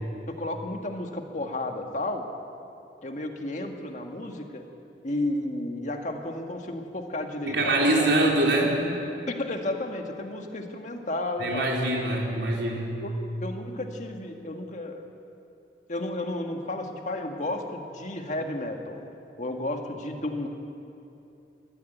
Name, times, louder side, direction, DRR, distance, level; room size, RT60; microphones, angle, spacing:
voice 1, 0.3-2.2 3.0-4.6 5.0-8.1 9.3-11.7 13.0-15.0 15.9-19.0 19.4-20.5, left 1 dB, 45° left, 4 dB, 1.8 m, -32 dB
voice 2, 7.5-8.8 11.4-12.9, right 1 dB, 85° right, -1 dB, 4.2 m, -24 dB
21.0 x 14.5 x 9.2 m, 2.8 s
head